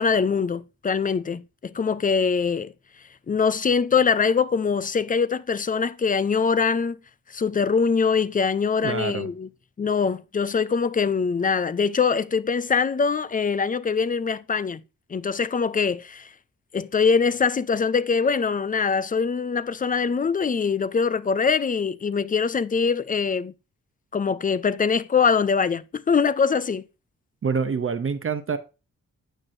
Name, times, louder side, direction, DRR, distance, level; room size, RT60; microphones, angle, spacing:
voice 1, 0.0-2.7 3.3-7.0 7.3-9.5 9.8-14.8 15.1-16.3 16.7-23.5 24.1-26.8, left 5 dB, 25° left, 0.4 m, -23 dB
voice 2, 8.8-9.3 27.4-28.6, right 5 dB, 40° right, 0.7 m, -26 dB
9.1 x 5.9 x 2.6 m
cardioid pair, 75°, 32 cm